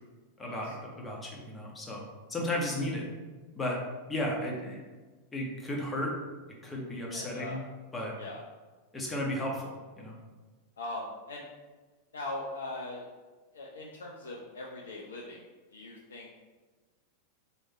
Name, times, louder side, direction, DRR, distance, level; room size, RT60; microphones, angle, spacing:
voice 1, 0.4-2.0 2.3-3.1 3.6-3.8 4.1-4.9 5.3-6.1 6.6-7.6 7.9-8.1 8.9-10.1, left 1 dB, 10° left, -2 dB, 0.6 m, -34 dB
voice 2, 7.1-7.6 8.2-8.4 10.8-11.5 12.1-13.1 13.5-15.4 15.7-16.4, left 2 dB, 70° left, -3 dB, 0.3 m, -40 dB
3.0 x 2.0 x 2.9 m, 1.3 s
figure-of-eight pair, 90°, 0 cm